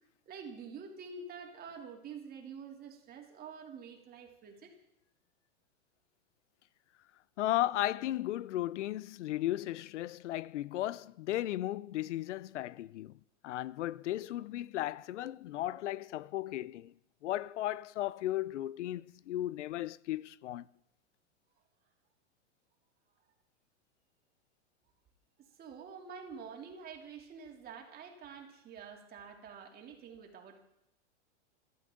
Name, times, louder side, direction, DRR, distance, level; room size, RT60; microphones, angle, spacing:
voice 1, 0.3-4.8 25.4-30.6, right 5 dB, 25° right, 3.1 m, -47 dB
voice 2, 7.4-13.2 13.4-16.9 17.2-20.6, left 14 dB, 75° left, 0.7 m, -35 dB
29.5 x 12.5 x 3.9 m
hypercardioid pair, 140°, 36 cm